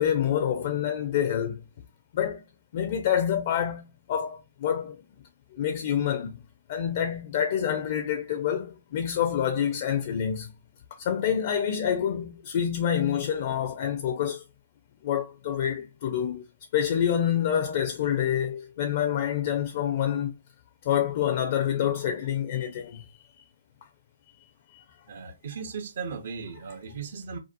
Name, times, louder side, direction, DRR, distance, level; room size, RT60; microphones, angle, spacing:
voice 1, 0.0-1.6 2.1-2.4 2.7-5.0 5.5-6.4 6.7-10.5 11.0-14.4 15.0-16.4 16.7-20.3 20.8-23.4 24.4-24.8, left 9 dB, 45° left, 0.4 m, -27 dB
voice 2, 25.1-27.4, right 5 dB, 55° right, 0.5 m, -37 dB
2.6 x 2.1 x 2.5 m
hypercardioid pair, 145°, 0 cm